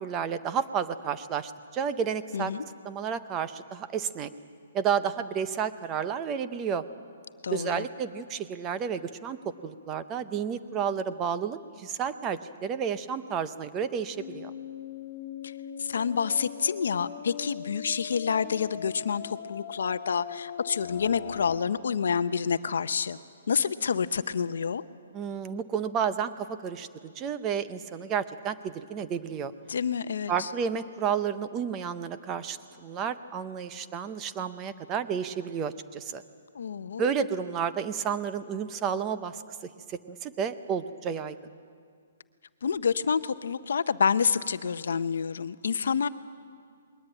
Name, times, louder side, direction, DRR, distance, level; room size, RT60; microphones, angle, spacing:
voice 1, 0.0-2.5 2.8-4.3 4.7-6.8 7.5-14.5 25.1-29.5 30.3-36.2 37.0-41.4, right 7 dB, 15° right, 11 dB, 0.6 m, -31 dB
voice 2, 2.3-2.6 7.4-7.9 15.4-15.5 15.8-23.2 23.5-24.8 29.7-30.5 36.5-37.0 42.6-46.1, left 6 dB, 65° left, 13 dB, 0.7 m, -28 dB
sound 1, 14.1-21.6, left 9 dB, 35° left, 1.7 m, -40 dB
21.0 x 20.0 x 8.9 m, 2.2 s
hypercardioid pair, 180°, 0 cm